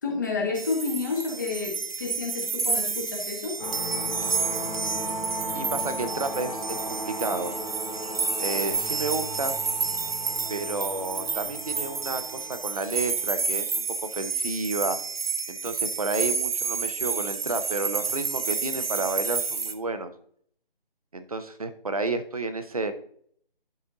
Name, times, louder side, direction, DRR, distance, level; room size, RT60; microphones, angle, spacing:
voice 1, 0.0-3.6, left 4 dB, 20° left, -1 dB, 1.3 m, -30 dB
sound 1, 0.6-19.7, right 4 dB, 80° right, 1.0 m, -30 dB
sound 2, 3.6-13.5, equal, 45° left, 3.2 m, -36 dB
voice 2, 5.5-7.5 8.4-9.6 10.5-13.8 14.1-15.0 15.5-20.1 21.1-22.9, right 3 dB, 40° right, 10 dB, 0.7 m, -31 dB
11.0 x 4.2 x 3.8 m, 0.63 s
figure-of-eight pair, 170°, 29 cm